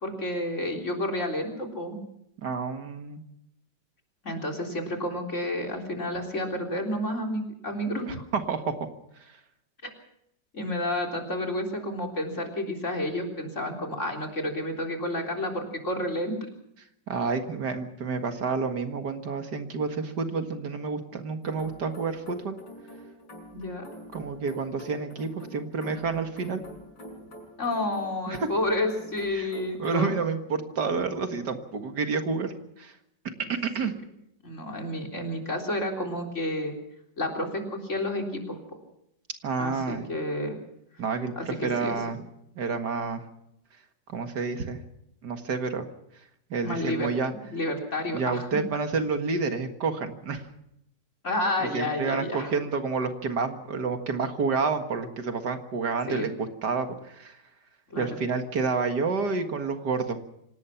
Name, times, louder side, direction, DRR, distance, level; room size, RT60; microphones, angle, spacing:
voice 1, 0.0-2.0 4.2-8.2 9.8-9.9 10.5-16.4 23.5-23.9 27.6-30.1 34.4-36.7 37.2-38.8 39.6-40.6 41.4-42.0 46.6-47.1 47.5-48.5 51.2-52.5 56.1-56.3 57.9-58.1, left 1 dB, 40° left, 2 dB, 4.1 m, -30 dB
voice 2, 2.4-3.2 8.1-8.7 9.2-9.4 17.1-22.6 24.1-26.6 28.3-28.5 29.3-29.5 29.8-33.0 33.5-33.9 39.4-40.1 41.0-42.2 42.6-43.2 44.1-44.8 45.2-45.9 46.5-47.3 48.1-50.5 51.6-57.4 58.0-60.2, right 4 dB, 70° right, 7 dB, 2.3 m, -29 dB
sound 1, 21.4-30.1, equal, 75° left, 6.9 m, -46 dB
26.0 x 18.5 x 5.9 m, 0.78 s
omnidirectional pair, 1.9 m